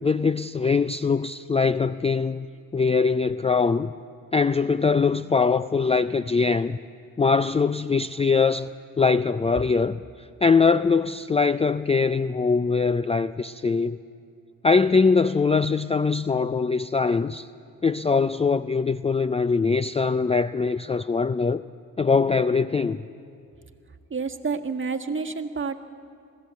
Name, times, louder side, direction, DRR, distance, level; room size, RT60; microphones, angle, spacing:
voice 1, 0.0-2.5 2.7-3.9 4.3-6.8 7.2-8.7 9.0-10.0 10.4-14.0 14.6-17.5 17.8-21.6 22.0-23.0, left 4 dB, 15° left, 0.4 m, -22 dB
voice 2, 24.1-25.8, right 4 dB, 30° right, 1.6 m, -29 dB
21.5 x 15.0 x 8.2 m
supercardioid pair, 55°, 40 cm